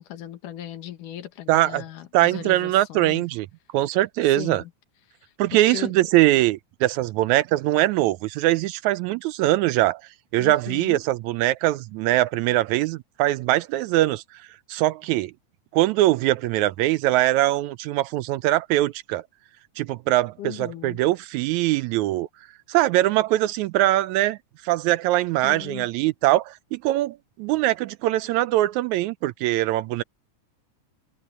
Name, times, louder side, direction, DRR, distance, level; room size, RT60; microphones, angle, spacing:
voice 1, 0.0-3.2 4.3-4.7 5.2-5.9 10.4-11.0 20.4-21.0 25.4-25.9, left 12 dB, 85° left, 3.0 m, -37 dB
voice 2, 1.5-1.8 2.1-3.5 3.7-4.6 5.4-10.0 10.3-14.2 14.7-15.3 15.7-19.2 19.8-22.3 22.7-24.4 24.6-30.0, right 16 dB, 80° right, 1.8 m, -22 dB
omnidirectional pair, 3.6 m